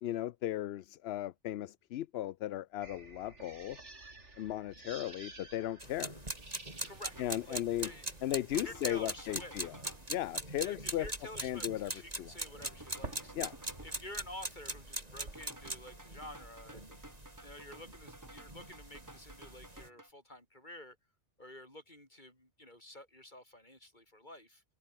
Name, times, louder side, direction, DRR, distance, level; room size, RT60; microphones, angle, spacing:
voice 1, 0.0-3.8 4.4-6.2 7.2-7.9 8.2-9.7 10.1-11.1 11.4-11.9 12.2-12.3 13.4-13.5, left 13 dB, 65° left, 0.8 m, -36 dB
sound 1, 2.8-15.7, right 2 dB, 80° right, 4.3 m, -53 dB
sound 2, 5.8-19.9, right 1 dB, 35° right, 4.4 m, -43 dB
voice 2, 6.8-7.2 7.4-8.2 8.5-9.6 10.6-13.3 13.8-17.0 17.4-21.0 21.4-24.6, left 1 dB, 40° left, 7.1 m, -50 dB
sound 3, 7.1-7.4 7.8-8.1 8.5-10.1 12.6-14.0 15.3-20.1, right 1 dB, 15° right, 2.6 m, -54 dB
omnidirectional pair, 1.2 m